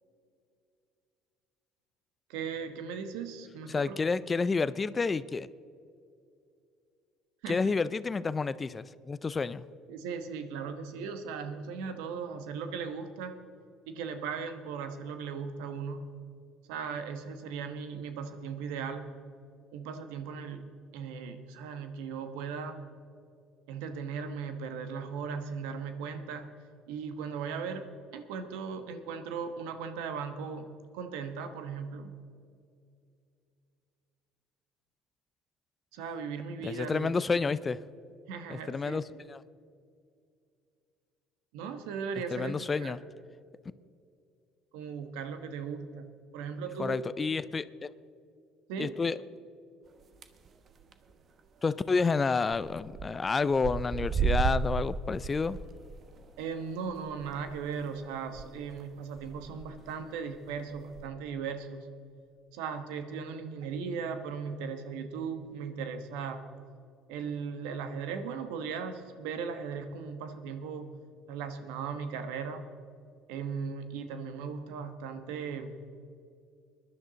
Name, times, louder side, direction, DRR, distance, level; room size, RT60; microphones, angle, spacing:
voice 1, 2.3-4.0 7.4-7.7 9.9-13.4 13.9-16.1 16.7-19.2 19.7-22.8 23.7-26.5 26.9-27.9 28.1-30.7 30.9-32.1 35.9-37.1 38.3-39.2 41.5-42.9 44.7-46.1 46.3-47.0 48.7-49.0 56.4-61.9 62.5-66.5 67.1-70.9 71.3-72.7 73.3-75.8, right 6 dB, 85° right, 8 dB, 1.2 m, -37 dB
voice 2, 3.7-5.5 7.5-9.6 36.6-37.8 38.5-39.0 39.3-39.4 42.3-43.0 46.8-47.9 48.8-49.2 51.6-55.6, left 4 dB, 25° left, 16 dB, 0.4 m, -29 dB
sound 1, 50.0-50.5 50.8-51.1 51.4-51.5 51.7-51.8 52.5-53.1 53.4-58.5 58.8-58.9 59.2-59.7 60.3-61.0, right 5 dB, 45° right, 1.0 m, -33 dB
21.0 x 11.0 x 4.0 m, 2.4 s
supercardioid pair, 90°, 0 cm